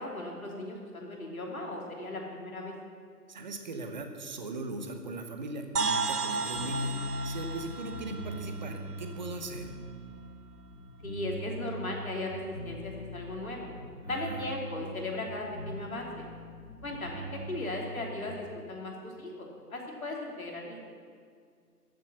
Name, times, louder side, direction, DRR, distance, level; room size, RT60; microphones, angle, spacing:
voice 1, 0.0-2.7 11.0-13.7 14.1-16.2 16.8-20.9, left 2 dB, 60° left, 0 dB, 3.2 m, -37 dB
voice 2, 3.3-6.9 7.2-9.7 14.3-14.4, right 2 dB, 30° right, 6 dB, 1.0 m, -39 dB
sound 1, 5.8-9.5, right 4 dB, 70° right, 1.0 m, -34 dB
sound 2, 6.5-18.4, equal, 5° left, 3.0 m, -41 dB
13.5 x 7.3 x 8.1 m, 2.1 s
figure-of-eight pair, 140°, 47 cm